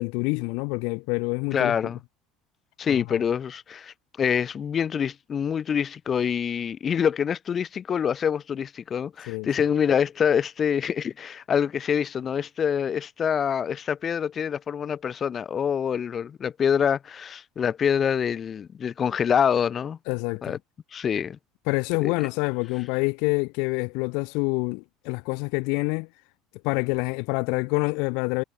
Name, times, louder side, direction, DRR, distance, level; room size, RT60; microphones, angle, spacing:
voice 1, 0.0-1.7 2.9-3.2 9.3-9.5 20.1-20.6 21.7-26.1 26.6-28.4, left 33 dB, 75° left, 1.4 m, -27 dB
voice 2, 1.5-2.0 2.8-20.0 20.4-20.6 20.9-21.4 22.0-22.1, left 7 dB, 35° left, 1.8 m, -26 dB
supercardioid pair, 120°, 0 cm